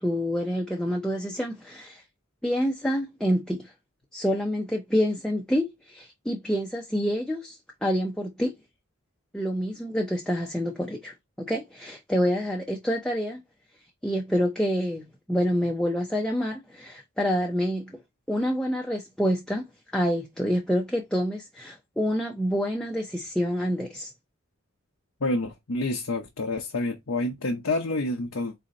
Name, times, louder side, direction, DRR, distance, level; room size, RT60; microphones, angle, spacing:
voice 1, 0.0-2.0 2.4-3.7 4.1-8.6 9.3-13.4 14.0-17.9 18.3-19.7 19.9-24.1, equal, 5° left, 0.6 m, -27 dB
voice 2, 25.2-28.5, left 2 dB, 75° left, 0.8 m, -28 dB
4.1 x 2.8 x 3.7 m
head